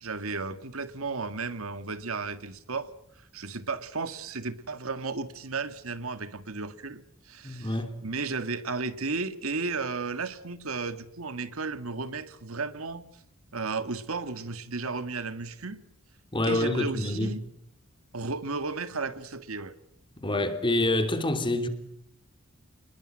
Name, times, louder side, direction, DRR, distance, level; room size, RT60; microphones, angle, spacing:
voice 1, 0.0-2.9 3.3-13.0 13.5-15.8 16.4-17.4 18.1-19.7, right 4 dB, 80° right, 1.7 m, -34 dB
voice 2, 7.4-7.9 16.3-17.3 20.2-21.7, left 1 dB, 25° left, 3.1 m, -27 dB
28.5 x 21.0 x 7.7 m
head